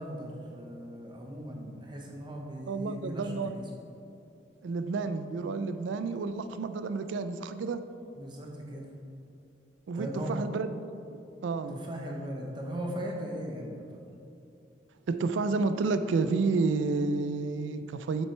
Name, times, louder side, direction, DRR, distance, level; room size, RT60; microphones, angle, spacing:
voice 1, 0.0-3.7 8.1-8.9 9.9-10.3 11.7-14.0, equal, 25° right, 0 dB, 0.9 m, -38 dB
voice 2, 2.7-3.6 4.6-7.8 9.9-11.0 11.4-11.8 15.1-18.3, right 4 dB, 85° right, 10 dB, 0.4 m, -30 dB
7.3 x 6.1 x 3.3 m, 2.7 s
head